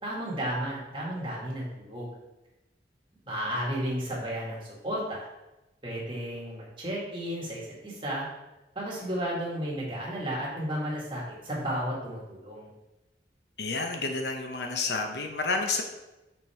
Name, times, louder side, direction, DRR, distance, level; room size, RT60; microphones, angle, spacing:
voice 1, 0.0-2.1 3.2-5.3 5.8-8.3 8.8-12.7, equal, 30° right, -5 dB, 2.1 m, -33 dB
voice 2, 13.6-15.8, left 3 dB, 70° left, 4 dB, 0.9 m, -30 dB
6.2 x 5.3 x 4.5 m, 0.99 s
head